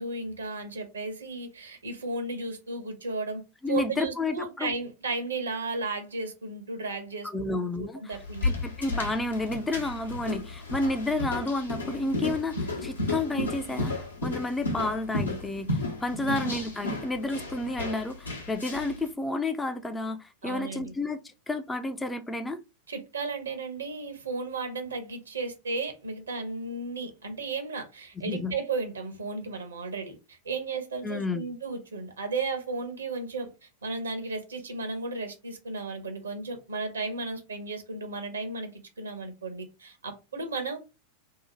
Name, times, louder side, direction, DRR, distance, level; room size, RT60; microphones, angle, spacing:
voice 1, 0.0-3.4 3.7-7.5 7.8-8.6 16.2-16.4 20.4-20.9 22.9-40.8, right 3 dB, 70° right, 0.7 m, -34 dB
voice 2, 3.6-4.7 7.3-22.6 28.2-28.6 31.0-31.5, left 2 dB, 10° left, 0.3 m, -31 dB
sound 1, 8.1-19.0, left 2 dB, 80° left, 0.7 m, -33 dB
2.7 x 2.0 x 3.0 m
figure-of-eight pair, 90°, 0 cm